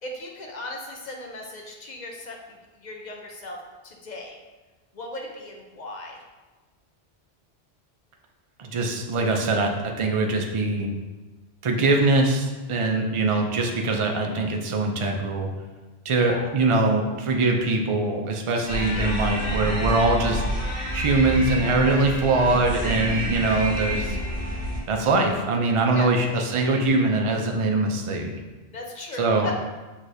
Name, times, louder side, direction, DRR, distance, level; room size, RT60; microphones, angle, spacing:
voice 1, 0.0-4.4 4.9-6.2 16.1-16.5 25.9-26.1 28.7-29.6, left 1 dB, 50° left, 0 dB, 0.6 m, -37 dB
voice 2, 8.6-9.7 10.0-10.9 11.6-15.5 16.1-24.2 24.9-28.3 29.2-29.5, right 2 dB, 45° right, 2 dB, 0.4 m, -22 dB
sound 1, 18.7-24.8, equal, 15° right, 1.5 m, -28 dB
6.3 x 3.1 x 2.6 m, 1.2 s
omnidirectional pair, 1.1 m